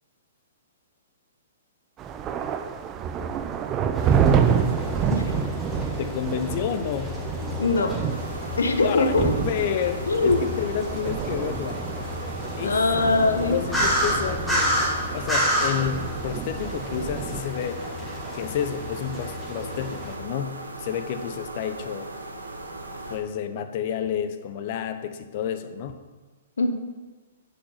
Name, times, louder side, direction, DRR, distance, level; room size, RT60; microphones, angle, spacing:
sound 1, 2.0-17.4, right 7 dB, 25° right, 0.5 m, -28 dB
sound 2, 3.9-20.2, left 1 dB, 5° left, 3.0 m, -31 dB
voice 1, 6.0-7.1 8.8-11.8 12.6-12.8 13.4-14.8 15.1-17.8 18.3-22.1 23.1-25.9, left 8 dB, 45° left, 10 dB, 0.8 m, -30 dB
voice 2, 7.6-8.0 8.6-9.3 10.1-10.4 12.6-13.6 26.6-26.7, left 3 dB, 80° left, 7 dB, 1.0 m, -22 dB
sound 3, 8.1-23.2, right 2 dB, 90° right, 1.3 m, -38 dB
10.0 x 5.2 x 5.6 m, 1.3 s
hypercardioid pair, 120°, 0 cm